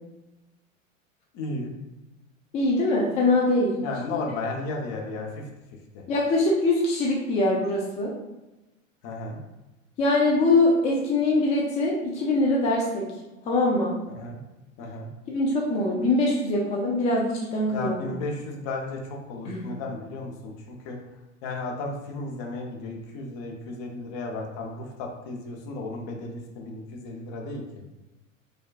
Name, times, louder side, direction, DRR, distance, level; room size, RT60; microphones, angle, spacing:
voice 1, 1.3-1.7 3.8-5.5 5.9-6.0 9.0-9.4 14.1-14.4 14.8-15.1 17.7-21.0 21.4-27.9, left 2 dB, 40° left, 1 dB, 0.7 m, -34 dB
voice 2, 2.5-3.8 4.1-4.2 6.1-8.1 10.0-13.1 13.5-13.9 15.3-18.1 19.4-19.6, left 2 dB, 20° left, -3 dB, 0.4 m, -23 dB
4.3 x 2.3 x 2.4 m, 1.0 s
figure-of-eight pair, 85°, 40 cm